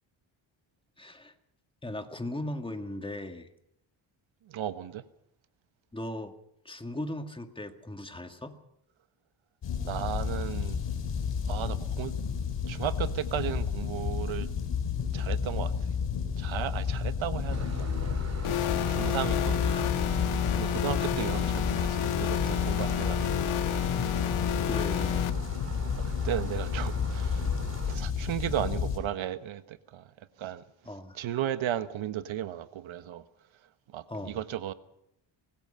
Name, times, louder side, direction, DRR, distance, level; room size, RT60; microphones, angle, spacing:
voice 1, 1.0-1.3 1.8-3.5 5.9-6.3 6.7-8.6 19.6-19.9 24.7-25.3 30.9-31.2 34.1-34.4, left 1 dB, 10° left, 1.9 m, -38 dB
voice 2, 4.5-5.0 9.8-10.8 11.5-12.2 12.7-14.5 15.1-15.7 16.4-18.2 18.9-19.6 20.5-23.5 25.8-27.5 27.9-30.6 31.1-33.2 33.9-34.7, right 11 dB, 70° right, 1.3 m, -35 dB
sound 1, 9.6-29.0, left 6 dB, 60° left, 3.5 m, -31 dB
sound 2, 17.5-28.0, right 4 dB, 30° right, 2.1 m, -42 dB
sound 3, 18.4-25.3, left 10 dB, 80° left, 1.7 m, -30 dB
24.5 x 19.0 x 5.7 m
cardioid pair, 115°, 48 cm